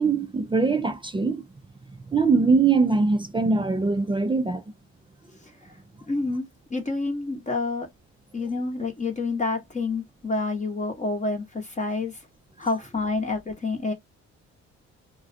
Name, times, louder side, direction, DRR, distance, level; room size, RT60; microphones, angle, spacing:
voice 1, 0.0-1.4 2.1-4.6, right 4 dB, 15° right, 0.3 m, -22 dB
voice 2, 6.1-6.4 6.7-7.9 8.3-12.2 12.6-13.9, left 3 dB, 25° left, 0.8 m, -28 dB
2.4 x 2.1 x 2.5 m
cardioid pair, 90°, 30 cm